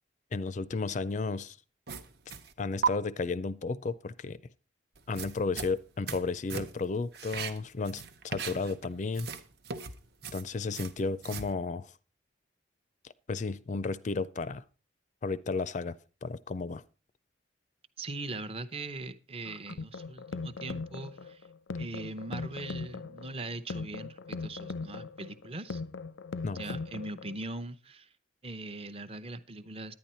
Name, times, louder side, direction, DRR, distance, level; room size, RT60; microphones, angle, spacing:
voice 1, 0.3-1.6 2.6-4.4 5.1-9.3 10.3-11.9 13.3-14.6 15.2-16.0 16.2-16.8 26.4-26.6, left 4 dB, 40° left, 0.4 m, -33 dB
sound 1, 1.9-2.5 2.8-2.9 5.0-6.2 6.5-6.9 7.1-8.9 9.1-11.5, right 6 dB, 60° right, 0.9 m, -36 dB
voice 2, 18.0-21.5 21.8-25.8 26.5-28.1 28.4-29.9, right 2 dB, 30° right, 0.7 m, -40 dB
sound 2, 19.5-27.4, left 4 dB, 90° left, 0.6 m, -39 dB
10.5 x 9.6 x 4.3 m
head